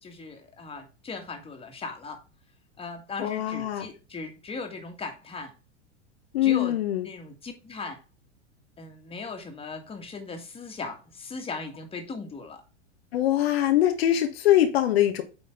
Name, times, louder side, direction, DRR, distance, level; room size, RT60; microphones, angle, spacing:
voice 1, 0.0-2.2 2.8-5.5 6.4-8.0 8.8-12.6, left 4 dB, 15° left, 2.1 m, -38 dB
voice 2, 3.2-3.8 6.3-7.0 13.1-15.2, left 12 dB, 55° left, 1.2 m, -23 dB
9.0 x 5.1 x 3.6 m
figure-of-eight pair, 90°, 36 cm